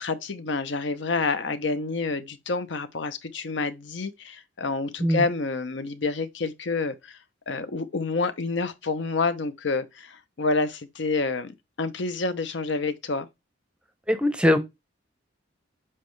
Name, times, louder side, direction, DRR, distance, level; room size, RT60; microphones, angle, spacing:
voice 1, 0.0-7.2 7.5-13.3, left 3 dB, 65° left, 0.7 m, -28 dB
voice 2, 14.1-14.6, left 1 dB, 5° right, 0.6 m, -21 dB
7.4 x 4.3 x 3.2 m
head